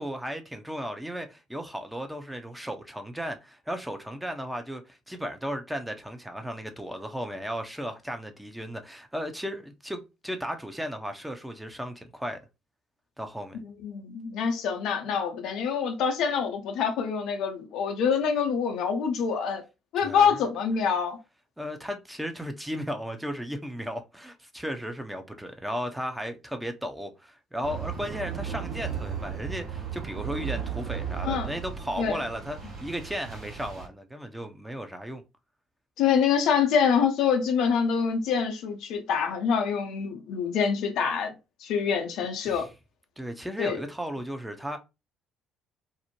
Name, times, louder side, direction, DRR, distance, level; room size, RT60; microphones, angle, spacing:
voice 1, 0.0-12.4 13.2-13.6 20.0-20.4 21.6-35.2 42.5-42.7 43.2-44.8, equal, 5° right, 0.5 m, -35 dB
voice 2, 13.8-19.6 19.9-21.2 31.2-31.5 32.0-32.2 36.0-41.3 41.6-42.7 43.6-43.8, left 6 dB, 65° left, 0.5 m, -26 dB
sound 1, 27.6-33.9, right 7 dB, 60° right, 1.0 m, -35 dB
2.6 x 2.0 x 2.9 m
hypercardioid pair, 50°, 0 cm